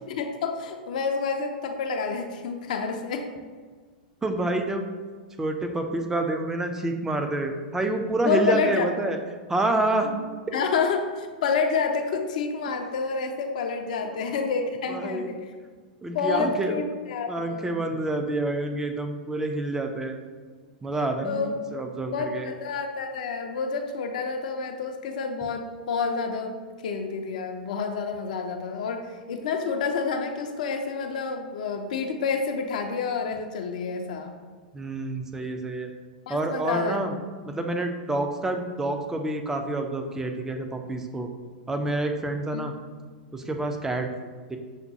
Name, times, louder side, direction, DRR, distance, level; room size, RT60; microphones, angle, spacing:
voice 1, 0.1-3.3 8.2-8.9 10.0-10.2 10.5-15.4 16.1-17.8 21.2-21.5 22.1-26.6 26.8-34.3 36.3-37.0 42.5-42.6, left 5 dB, 55° left, 4 dB, 0.4 m, -28 dB
voice 2, 4.2-4.8 5.4-9.2 9.5-10.1 14.0-14.2 14.9-15.4 16.0-16.8 17.3-20.2 20.8-22.5 34.7-35.9 36.3-37.2 37.5-41.3 41.7-42.7 43.3-44.1 44.5-44.6, right 2 dB, 10° right, 5 dB, 0.4 m, -28 dB
6.3 x 2.1 x 2.7 m, 1.5 s
figure-of-eight pair, 100°, 5 cm